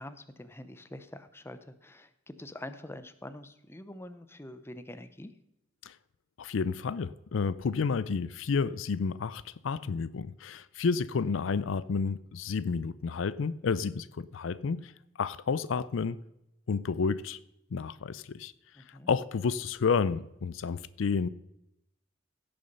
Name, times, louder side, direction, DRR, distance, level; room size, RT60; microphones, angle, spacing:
voice 1, 0.0-5.3 18.8-19.1, left 1 dB, 10° left, 0.7 m, -45 dB
voice 2, 6.4-14.9 15.2-16.2 16.7-17.4 17.7-18.5 18.9-21.3, left 5 dB, 75° left, 0.4 m, -30 dB
16.0 x 6.9 x 5.4 m
head